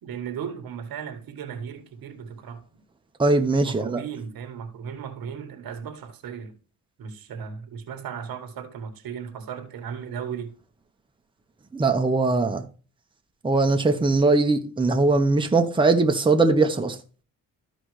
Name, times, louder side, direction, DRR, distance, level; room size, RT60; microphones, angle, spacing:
voice 1, 0.0-2.8 3.6-6.6 7.0-10.6, right 7 dB, 90° right, 1.6 m, -36 dB
voice 2, 3.2-4.0 11.7-12.6 13.4-17.0, right 3 dB, 15° right, 1.0 m, -20 dB
13.5 x 5.1 x 3.1 m
cardioid pair, 115°, 35 cm